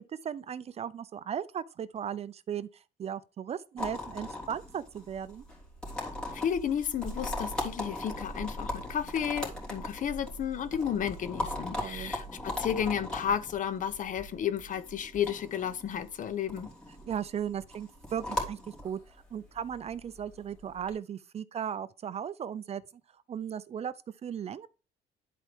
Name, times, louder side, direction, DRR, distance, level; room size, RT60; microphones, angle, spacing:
voice 1, 0.2-5.4 11.8-12.1 17.1-22.8 23.3-23.9 24.2-24.7, right 8 dB, 40° right, 0.5 m, -37 dB
sound 1, 3.8-20.9, left 1 dB, 5° left, 3.3 m, -39 dB
voice 2, 6.3-16.7, left 8 dB, 50° left, 1.0 m, -32 dB
11.0 x 4.6 x 3.6 m
cardioid pair, 110°, 17 cm